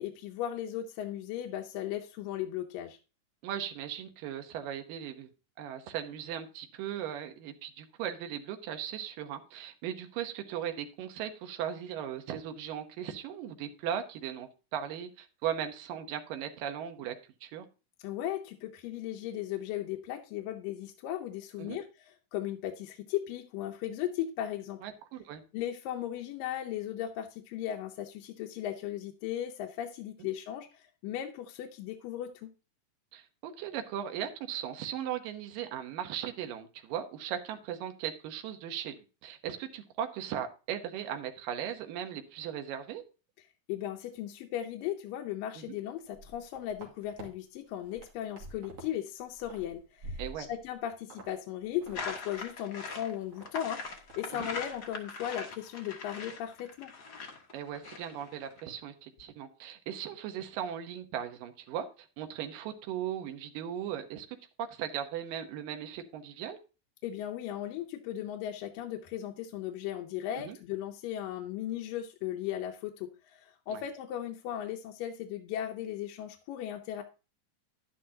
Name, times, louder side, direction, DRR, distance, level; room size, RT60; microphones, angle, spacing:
voice 1, 0.0-3.0 18.0-24.8 25.5-32.5 43.7-56.9 67.0-77.0, left 11 dB, 80° left, 3 dB, 2.4 m, -37 dB
voice 2, 3.4-5.3 5.6-17.2 17.4-17.7 21.6-21.8 24.8-25.4 33.1-43.0 45.6-45.8 50.2-50.5 54.3-54.5 57.5-66.6 70.3-70.6 73.7-73.8, right 9 dB, 80° right, 6 dB, 2.7 m, -38 dB
sound 1, 46.1-47.3 47.7-48.9 49.2-50.7 51.1-51.3 51.6-52.1 52.4-52.5 52.9-53.5 53.8-54.2 54.5-54.8, right 1 dB, 45° right, 3.0 m, -47 dB
sound 2, 51.9-58.6, left 4 dB, 55° left, 1.1 m, -41 dB
11.0 x 10.0 x 2.8 m, 0.31 s
omnidirectional pair, 3.9 m